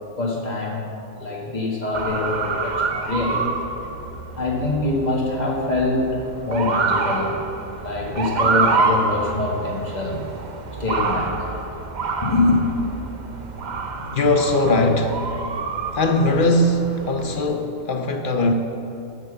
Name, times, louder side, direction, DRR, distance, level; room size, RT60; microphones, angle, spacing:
voice 1, 0.2-0.8 1.2-3.5 4.4-6.2 6.4-7.4 7.8-10.2 10.8-11.5 12.2-12.6, left 2 dB, 30° left, -1 dB, 1.6 m, -24 dB
Motor vehicle (road) / Siren, 1.9-17.5, right 4 dB, 50° right, 0.5 m, -27 dB
voice 2, 14.0-15.3 15.9-18.5, left 2 dB, 50° left, 5 dB, 0.6 m, -20 dB
12.0 x 6.1 x 6.8 m, 2.7 s
omnidirectional pair, 1.7 m